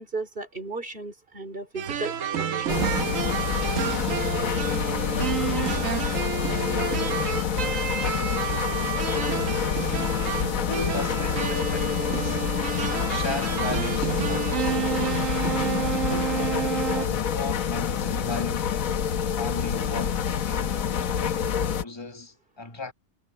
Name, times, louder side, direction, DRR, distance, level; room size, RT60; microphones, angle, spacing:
voice 1, 0.0-2.9, right 3 dB, 40° right, 3.1 m, -35 dB
Big Band Jazz Swing Theme, 1.8-17.1, right 9 dB, 75° right, 1.2 m, -30 dB
sound 1, 2.7-21.8, left 8 dB, 80° left, 1.4 m, -27 dB
voice 2, 10.6-14.9 15.5-22.9, left 3 dB, 20° left, 1.7 m, -37 dB
omnidirectional pair, 1.4 m